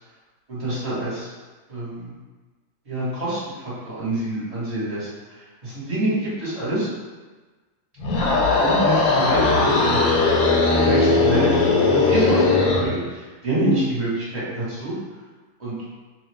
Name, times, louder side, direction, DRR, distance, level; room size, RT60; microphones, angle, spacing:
voice 1, 0.5-1.3 1.7-2.1 2.9-3.4 3.8-5.1 5.6-6.9 8.6-10.1 10.8-11.5 11.8-14.9 15.6-15.7, right 1 dB, 25° right, -10 dB, 1.1 m, -26 dB
sound 1, 8.0-12.9, left 3 dB, 70° left, 1.0 m, -18 dB
2.8 x 2.3 x 3.3 m, 1.3 s
omnidirectional pair, 1.8 m